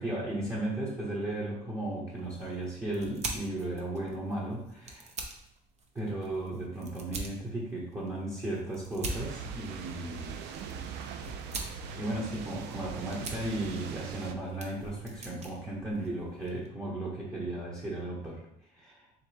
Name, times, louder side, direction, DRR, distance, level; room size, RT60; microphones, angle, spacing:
voice 1, 0.0-5.1 5.9-10.4 12.0-18.4 18.7-19.1, right 1 dB, 20° right, -6 dB, 1.0 m, -35 dB
sound 1, 2.1-16.7, right 2 dB, 40° right, 0.7 m, -44 dB
sound 2, 9.1-14.3, right 6 dB, 80° right, 0.4 m, -40 dB
4.0 x 3.2 x 3.2 m, 0.75 s
cardioid pair, 110°, 17 cm